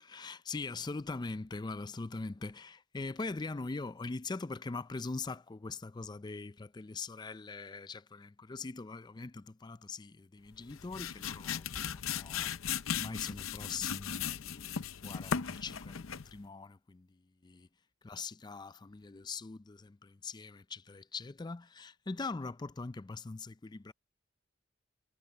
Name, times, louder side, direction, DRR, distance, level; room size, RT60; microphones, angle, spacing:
voice 1, 0.0-12.5 12.9-17.2 17.4-17.7 18.0-23.9, left 3 dB, 20° left, 0.4 m, -42 dB
sound 1, 10.6-16.4, left 8 dB, 85° left, 0.7 m, -37 dB
head